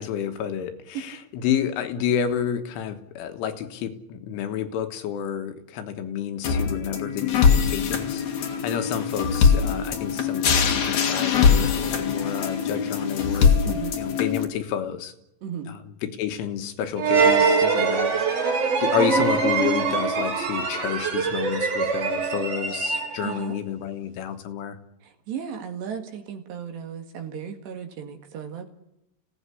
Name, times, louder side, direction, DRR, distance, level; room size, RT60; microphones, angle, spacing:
voice 1, 0.0-13.6 14.0-15.1 15.7-24.8, left 9 dB, 75° left, 7 dB, 3.6 m, -30 dB
sound 1, 6.4-14.4, left 6 dB, 55° left, 2.2 m, -22 dB
voice 2, 13.7-14.0 15.4-15.7 23.2-23.6 25.0-28.7, right 7 dB, 60° right, 5 dB, 3.7 m, -35 dB
sound 2, 17.0-23.4, right 5 dB, 40° right, 2.5 m, -23 dB
26.5 x 17.0 x 9.8 m, 0.89 s
omnidirectional pair, 6.0 m